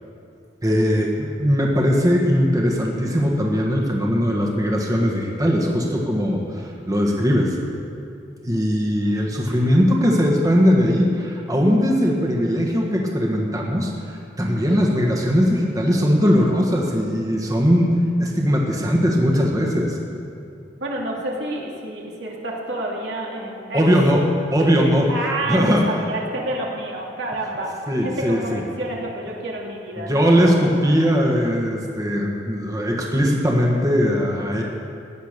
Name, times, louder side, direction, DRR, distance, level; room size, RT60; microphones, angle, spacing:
voice 1, 0.6-7.6 8.4-20.0 23.7-24.2 24.5-25.1 25.5-25.9 27.9-28.6 30.0-34.6, equal, 20° right, -1 dB, 1.5 m, -20 dB
voice 2, 20.8-23.8 25.1-27.7 28.0-30.5, right 1 dB, 80° right, -2 dB, 2.7 m, -29 dB
16.5 x 10.5 x 6.7 m, 2.6 s
head